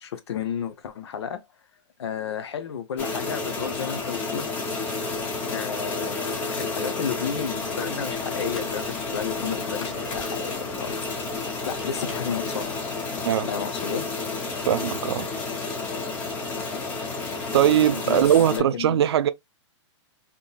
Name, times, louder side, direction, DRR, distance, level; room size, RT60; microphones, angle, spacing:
voice 1, 0.0-1.4 2.0-4.5 5.5-11.0 11.7-12.7 13.5-14.1 18.1-19.0, left 7 dB, 60° left, 0.7 m, -32 dB
sound 1, 3.0-18.6, left 3 dB, 10° left, 0.5 m, -31 dB
sound 2, 7.3-12.8, left 4 dB, 85° left, 1.9 m, -46 dB
voice 2, 14.7-15.3 17.5-19.3, right 10 dB, 55° right, 0.4 m, -20 dB
3.6 x 2.8 x 2.2 m
hypercardioid pair, 175°, 16 cm